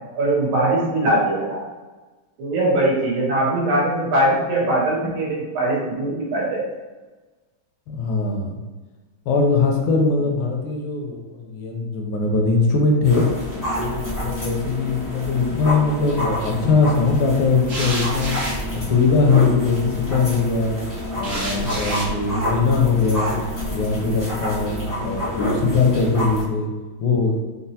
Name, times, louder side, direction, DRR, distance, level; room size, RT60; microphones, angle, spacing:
voice 1, 0.1-1.6 2.4-6.6, right 1 dB, 80° right, -3 dB, 1.7 m, -21 dB
voice 2, 7.9-8.6 9.3-13.2 13.7-18.3 18.7-20.8 21.2-23.3 23.7-24.7 25.0-26.7 27.0-27.3, left 4 dB, 80° left, 2 dB, 1.4 m, -21 dB
sound 1, 13.0-26.4, left 1 dB, 30° left, 0.3 m, -28 dB
sound 2, 15.4-15.9 17.7-19.7 21.2-22.2, right 1 dB, 60° right, 0.8 m, -30 dB
4.2 x 2.0 x 2.7 m, 1.2 s
omnidirectional pair, 2.3 m